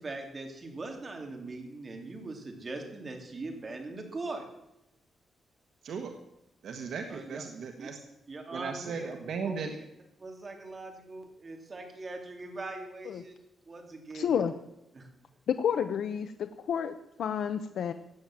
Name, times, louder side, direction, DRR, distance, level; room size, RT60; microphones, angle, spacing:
voice 1, 0.0-4.5 7.1-7.4 7.8-7.9 8.3-9.1 9.4-9.8 10.2-13.3 13.6-14.4 14.9-15.1, right 2 dB, 30° right, 3 dB, 3.0 m, -41 dB
voice 2, 6.6-8.0 8.5-9.7, right 5 dB, 70° right, 4 dB, 1.5 m, -36 dB
voice 3, 14.1-14.5 15.5-17.9, left 8 dB, 75° left, 9 dB, 0.8 m, -30 dB
16.0 x 9.1 x 7.4 m, 0.86 s
wide cardioid pair, 150°, 0 cm